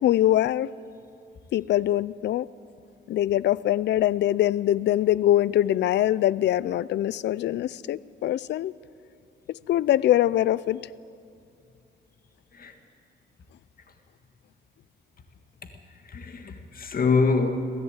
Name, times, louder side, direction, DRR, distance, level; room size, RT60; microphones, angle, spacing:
voice 1, 0.0-0.7 1.5-2.5 3.1-8.7 9.5-10.8, left 13 dB, 60° left, 0.5 m, -23 dB
voice 2, 16.1-17.5, left 4 dB, 45° left, 1.8 m, -24 dB
22.0 x 15.0 x 8.9 m
cardioid pair, 90°, 20 cm